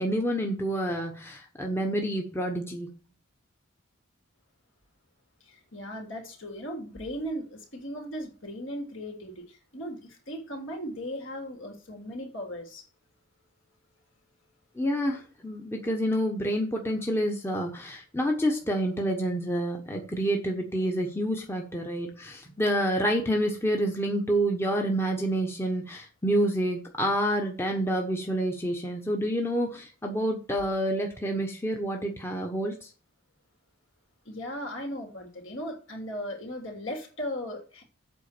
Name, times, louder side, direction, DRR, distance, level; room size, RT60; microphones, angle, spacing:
voice 1, 0.0-2.9 14.8-32.9, equal, 10° left, 2 dB, 1.0 m, -28 dB
voice 2, 5.4-12.8 34.2-37.8, equal, 65° left, 2 dB, 3.2 m, -37 dB
8.3 x 5.1 x 6.7 m, 0.36 s
head